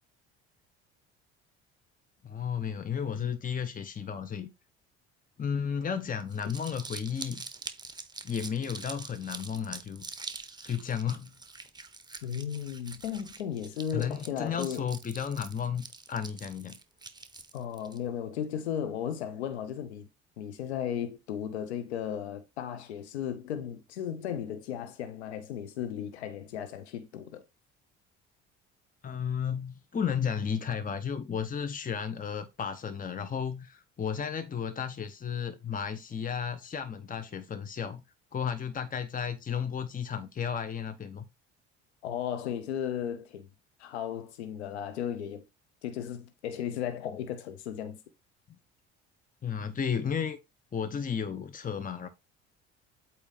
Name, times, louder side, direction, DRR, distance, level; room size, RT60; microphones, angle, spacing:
voice 1, 2.2-4.5 5.4-7.4 8.2-10.1 10.6-11.3 13.9-16.8 29.0-38.0 38.3-41.2 49.4-50.4 50.7-52.1, left 7 dB, 25° left, 1.0 m, -33 dB
Crumpling crinkling, 6.2-18.0, right 3 dB, 15° right, 1.1 m, -45 dB
voice 2, 12.2-14.8 17.5-20.1 20.4-27.4 42.0-43.5 43.8-45.4 45.8-48.0, left 9 dB, 90° left, 0.9 m, -35 dB
8.3 x 3.0 x 5.3 m
hypercardioid pair, 65°, 32 cm